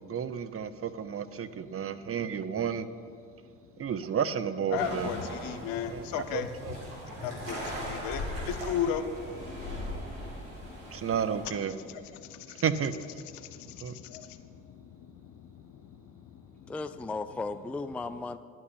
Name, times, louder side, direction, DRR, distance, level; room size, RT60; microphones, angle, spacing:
voice 1, 0.0-2.9 3.8-5.1 5.9-6.8 10.9-11.7 12.5-12.9 13.8-13.9, right 7 dB, 40° right, 13 dB, 0.7 m, -32 dB
voice 2, 4.7-6.8 7.2-9.1 9.3-9.4 10.6-11.0 12.1-12.6 13.3-16.7, left 9 dB, 75° left, 9 dB, 0.8 m, -36 dB
sound 1, 4.8-11.5, equal, 90° right, 2.6 m, -39 dB
voice 3, 16.7-18.4, left 3 dB, 5° left, 11 dB, 0.4 m, -35 dB
10.5 x 5.9 x 8.6 m, 2.3 s
hypercardioid pair, 55°, 36 cm